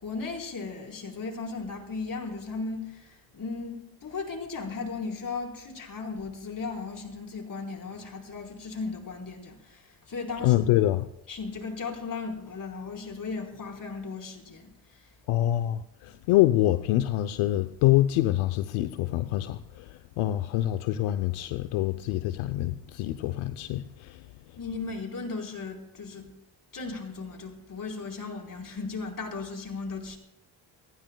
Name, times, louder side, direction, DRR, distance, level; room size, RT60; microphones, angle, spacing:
voice 1, 0.0-10.5 11.3-15.1 24.6-26.3 26.7-30.2, left 4 dB, 40° left, 4.3 m, -36 dB
voice 2, 10.4-11.1 15.3-24.3, left 14 dB, 80° left, 0.8 m, -26 dB
28.5 x 15.5 x 2.3 m
supercardioid pair, 70°, 48 cm